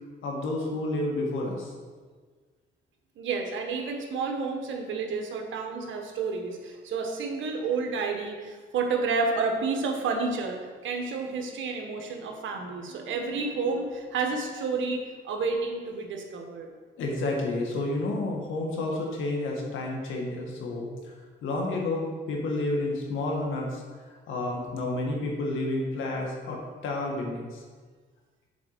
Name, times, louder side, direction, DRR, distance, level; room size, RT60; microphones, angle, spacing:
voice 1, 0.2-1.7 17.0-21.1 21.4-23.8 24.3-27.6, left 2 dB, 80° left, -1 dB, 1.8 m, -30 dB
voice 2, 3.2-16.7, right 4 dB, 75° right, 2 dB, 1.4 m, -30 dB
7.0 x 4.5 x 6.7 m, 1.5 s
cardioid pair, 90°, 20 cm